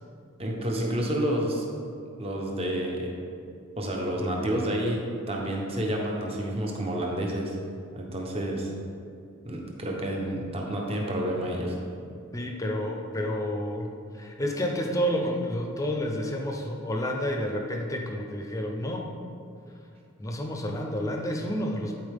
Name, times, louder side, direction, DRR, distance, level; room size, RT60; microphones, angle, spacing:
voice 1, 0.4-1.6 2.2-3.1 3.8-7.6 7.9-8.7 9.4-11.8, right 1 dB, 25° right, -1 dB, 1.0 m, -29 dB
voice 2, 12.3-19.1 20.2-22.0, equal, 15° left, 1 dB, 0.6 m, -30 dB
11.5 x 4.6 x 3.6 m, 2.5 s
head